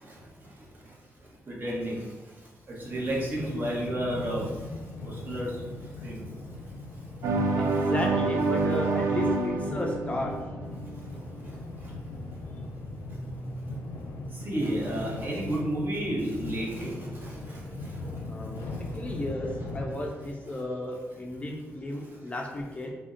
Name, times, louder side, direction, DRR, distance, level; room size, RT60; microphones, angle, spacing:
voice 1, 1.6-2.0 2.9-4.5 5.0-5.5 6.0-6.2 14.4-16.9, right 1 dB, 40° right, -4 dB, 0.9 m, -30 dB
sound 1, 2.8-19.9, left 2 dB, 85° left, 0.5 m, -39 dB
sound 2, 7.2-11.1, right 3 dB, 90° right, 0.4 m, -27 dB
voice 2, 7.5-10.3 18.3-18.7 18.9-19.5 19.7-22.9, left 1 dB, 25° left, 0 dB, 0.4 m, -34 dB
2.6 x 2.1 x 3.7 m, 1.2 s
cardioid pair, 105°, 5 cm